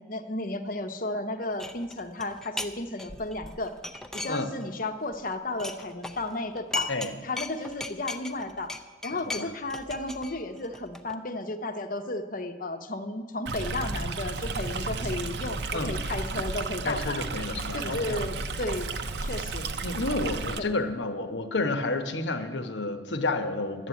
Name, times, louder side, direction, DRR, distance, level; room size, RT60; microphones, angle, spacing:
voice 1, 0.0-3.7 4.1-6.9 7.2-8.7 9.0-17.3 17.7-18.9 19.2-19.7 20.6-20.7, left 2 dB, 50° left, 7 dB, 0.9 m, -33 dB
sound 1, 1.6-2.7 3.0-4.8 5.1-7.1 7.4-11.1, left 2 dB, 5° left, 0.5 m, -37 dB
Stream, 13.5-20.6, right 3 dB, 65° right, 0.7 m, -33 dB
voice 2, 16.8-18.2 19.8-23.9, left 2 dB, 80° left, 8 dB, 1.1 m, -30 dB
12.0 x 7.8 x 8.3 m, 1.4 s
head